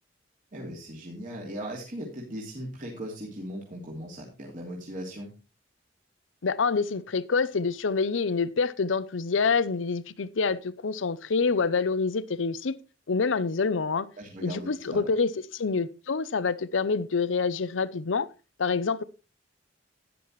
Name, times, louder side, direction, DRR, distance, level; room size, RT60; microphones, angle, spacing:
voice 1, 0.5-5.3 14.2-15.1, equal, 45° right, 2.8 m, -38 dB
voice 2, 6.4-12.7 13.1-14.1 14.4-18.3 18.6-19.0, left 4 dB, 90° left, 0.6 m, -27 dB
13.0 x 10.5 x 3.1 m
head